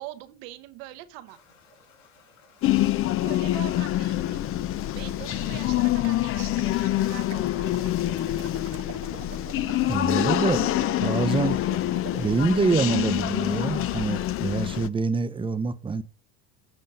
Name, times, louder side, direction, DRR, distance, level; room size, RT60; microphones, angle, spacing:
voice 1, 0.0-1.4 3.2-4.5 4.9-7.8, right 15 dB, 75° right, 1.1 m, -42 dB
sound 1, 1.3-14.5, left 4 dB, 80° left, 4.7 m, -57 dB
sound 2, 2.6-14.9, left 14 dB, 35° left, 0.4 m, -26 dB
sound 3, 5.1-13.6, right 9 dB, 35° right, 0.9 m, -45 dB
voice 2, 9.9-11.6 12.2-16.0, right 4 dB, 10° right, 0.6 m, -26 dB
7.9 x 5.2 x 5.5 m
supercardioid pair, 110°, 43 cm